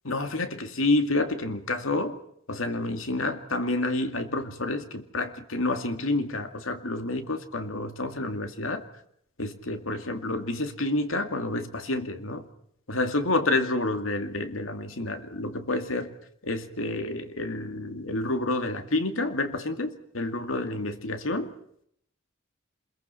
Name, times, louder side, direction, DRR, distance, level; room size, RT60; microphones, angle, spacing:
voice 1, 0.0-2.2 2.5-8.8 9.4-12.4 12.9-16.1 16.4-21.5, left 2 dB, 80° left, 2.3 m, -29 dB
27.5 x 22.0 x 5.8 m
head